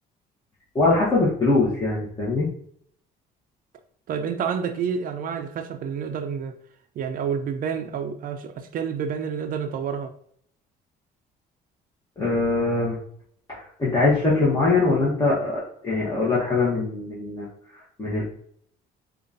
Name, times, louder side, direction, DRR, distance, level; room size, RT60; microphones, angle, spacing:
voice 1, 0.7-2.5 12.2-13.0 13.5-18.2, left 3 dB, 20° left, -7 dB, 1.1 m, -22 dB
voice 2, 4.1-6.5 7.0-10.1, right 7 dB, 55° right, 7 dB, 0.5 m, -29 dB
4.9 x 2.4 x 2.6 m, 0.65 s
cardioid pair, 110°, 17 cm